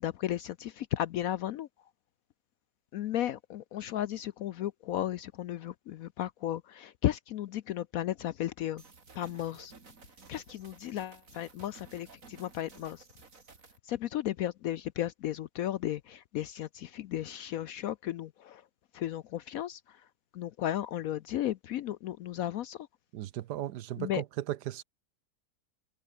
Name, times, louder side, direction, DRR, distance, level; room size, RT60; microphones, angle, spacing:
voice 1, 0.0-1.7 2.9-8.8 9.2-9.7 10.3-13.0 13.8-18.6 18.9-20.0 20.3-22.9 24.0-24.2, left 12 dB, 70° left, 0.9 m, -34 dB
sound 1, 8.8-13.8, right 4 dB, 50° right, 3.1 m, -55 dB
voice 2, 23.1-24.8, right 13 dB, 75° right, 1.3 m, -36 dB
omnidirectional pair, 1.9 m